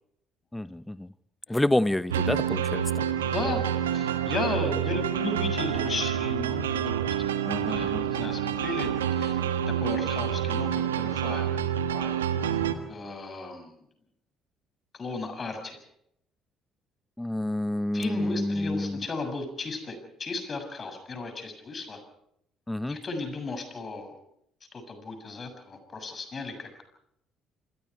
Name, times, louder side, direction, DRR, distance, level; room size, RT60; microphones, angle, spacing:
voice 1, 0.5-1.1 1.5-3.0 7.4-8.0 17.2-19.0 22.7-23.0, left 1 dB, 10° left, 17 dB, 1.0 m, -28 dB
sound 1, 2.1-12.7, right 9 dB, 85° right, 1.5 m, -28 dB
voice 2, 3.2-3.6 3.9-11.6 11.9-12.3 12.9-13.8 14.9-15.8 17.9-22.0 22.9-24.2 24.7-26.7, left 3 dB, 40° left, 7 dB, 7.1 m, -35 dB
27.5 x 22.0 x 4.7 m, 0.73 s
hypercardioid pair, 55°, 0 cm